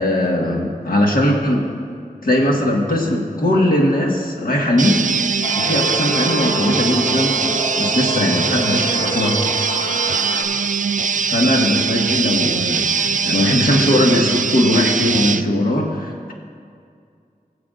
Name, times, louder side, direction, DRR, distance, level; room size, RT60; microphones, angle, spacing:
voice 1, 0.0-1.7 2.2-5.0 5.6-9.4 11.2-16.3, left 1 dB, 70° left, -1 dB, 1.7 m, -19 dB
sound 1, 4.8-15.4, right 5 dB, 60° right, 0.4 m, -21 dB
sound 2, 5.4-10.4, equal, 40° left, 1.5 m, -27 dB
21.5 x 7.4 x 2.5 m, 2.3 s
wide cardioid pair, 55°, 15 cm